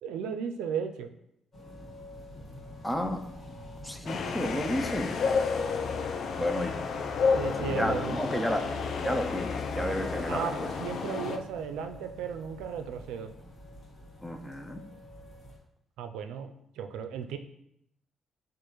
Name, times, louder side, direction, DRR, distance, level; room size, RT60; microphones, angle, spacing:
voice 1, 0.0-1.1 7.3-8.5 10.3-13.3 16.0-17.4, right 7 dB, 90° right, 7 dB, 0.4 m, -35 dB
sound 1, 1.5-15.6, left 1 dB, 35° left, 1.6 m, -48 dB
voice 2, 2.8-3.2 3.8-5.1 6.4-6.7 7.5-8.7 9.0-10.7 14.2-14.8, equal, 5° left, 6 dB, 0.5 m, -31 dB
sound 2, 4.1-11.4, left 5 dB, 60° left, 0.4 m, -31 dB
6.8 x 2.5 x 3.0 m, 0.77 s
cardioid pair, 90°, 0 cm